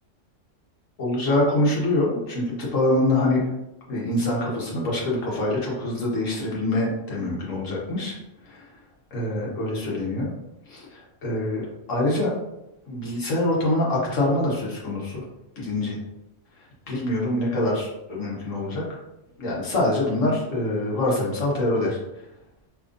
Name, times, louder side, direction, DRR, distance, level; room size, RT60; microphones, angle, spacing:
voice 1, 1.0-3.4 3.9-8.1 8.5-8.6 9.1-10.3 10.7-12.3 12.9-15.2 15.6-16.0 16.9-18.8 19.4-22.0, left 1 dB, 80° left, -3 dB, 1.5 m, -25 dB
5.1 x 3.3 x 2.5 m, 0.89 s
omnidirectional pair, 1.3 m